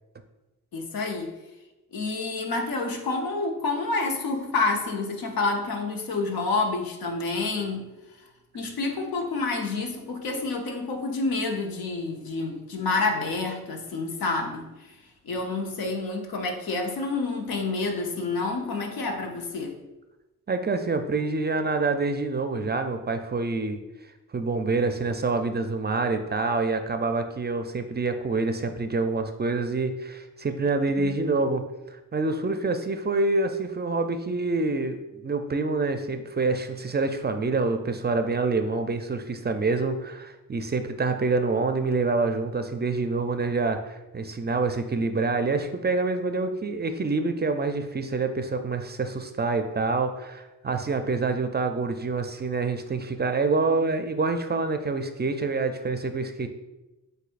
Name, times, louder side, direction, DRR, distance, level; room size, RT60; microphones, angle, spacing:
voice 1, 0.7-1.3 1.9-7.9 8.5-14.9 15.2-19.8 31.0-31.2, left 3 dB, 80° left, 3 dB, 0.8 m, -28 dB
voice 2, 20.5-23.8 24.3-56.5, right 3 dB, 30° right, 7 dB, 0.4 m, -26 dB
7.6 x 2.6 x 2.5 m, 1.0 s
cardioid pair, 50°, 35 cm